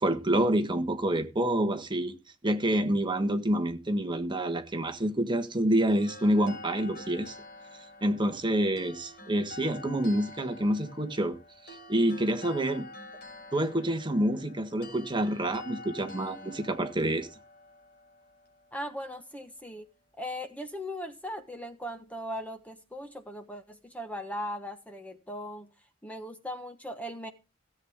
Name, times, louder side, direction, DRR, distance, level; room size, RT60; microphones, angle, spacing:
voice 1, 0.0-2.1 2.4-7.3 8.0-11.4 11.6-12.9 13.5-17.3, right 1 dB, 25° right, 1.4 m, -27 dB
sound 1, 5.9-19.1, left 2 dB, 55° left, 5.6 m, -48 dB
voice 2, 18.7-19.9 20.2-25.7 26.0-27.3, equal, 5° left, 1.2 m, -38 dB
17.0 x 8.1 x 3.6 m
head